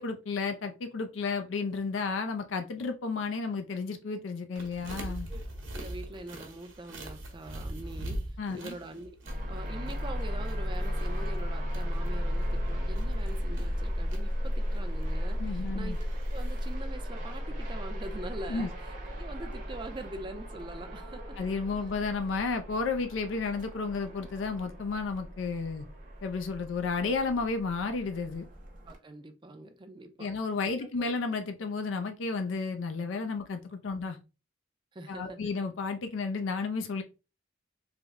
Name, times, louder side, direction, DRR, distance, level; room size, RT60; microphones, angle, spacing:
voice 1, 0.0-5.3 8.4-8.8 15.4-16.0 18.5-18.7 21.4-25.9 26.2-28.5 30.2-34.2 35.1-37.0, left 4 dB, 80° left, 0.4 m, -32 dB
sound 1, 4.6-16.7, right 1 dB, 80° right, 0.9 m, -43 dB
voice 2, 4.8-5.4 5.7-9.2 9.5-21.4 28.9-30.3 30.7-31.1 33.9-34.0 34.9-35.4, right 2 dB, 25° right, 0.4 m, -44 dB
sound 2, 9.3-29.0, equal, 45° right, 0.8 m, -35 dB
3.3 x 2.0 x 3.5 m
head